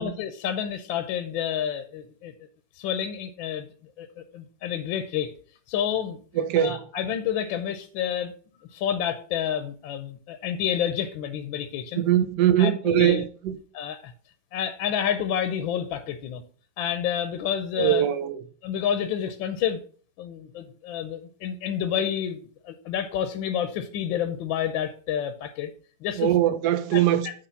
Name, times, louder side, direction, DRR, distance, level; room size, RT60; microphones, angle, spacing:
voice 1, 0.0-2.3 2.7-5.3 5.7-6.2 6.6-8.3 8.7-12.1 12.6-13.2 13.7-14.1 14.5-16.4 16.8-18.1 18.6-19.8 20.2-25.7 26.0-26.3 26.9-27.0, left 9 dB, 80° left, 1.4 m, -29 dB
voice 2, 6.4-6.8 11.9-13.6 17.8-18.4 26.2-27.3, right 11 dB, 65° right, 1.2 m, -22 dB
9.2 x 3.5 x 5.7 m
omnidirectional pair, 2.2 m